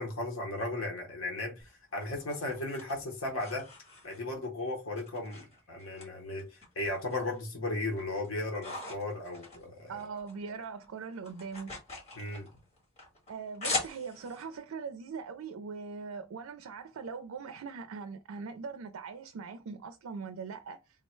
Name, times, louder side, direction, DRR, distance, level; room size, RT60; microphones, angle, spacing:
voice 1, 0.0-3.7 4.0-10.0 12.2-12.5, left 2 dB, 75° left, 1.0 m, -36 dB
sound 1, 1.6-4.5 4.9-6.1 6.4-7.4 7.8-10.4 10.6-14.4, left 2 dB, 30° left, 1.6 m, -41 dB
voice 2, 9.9-11.8 13.3-20.8, right 5 dB, 80° right, 0.4 m, -41 dB
3.7 x 2.1 x 4.3 m
head